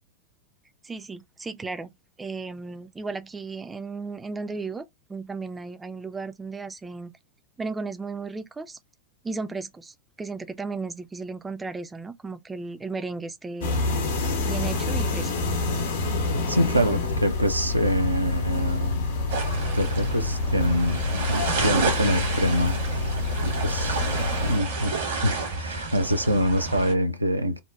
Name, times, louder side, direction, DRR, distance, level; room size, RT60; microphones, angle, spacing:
voice 1, 0.8-1.9 2.2-7.1 7.6-8.8 9.2-13.8 14.4-15.3, right 4 dB, 10° right, 0.3 m, -35 dB
sound 1, 13.6-24.6, left 3 dB, 60° left, 0.7 m, -27 dB
voice 2, 16.5-19.1 19.7-23.1 23.4-24.1 24.4-27.6, equal, 85° right, 0.4 m, -25 dB
sound 2, 19.3-26.9, right 4 dB, 60° right, 0.9 m, -30 dB
2.7 x 2.1 x 2.3 m
figure-of-eight pair, 90°, 0 cm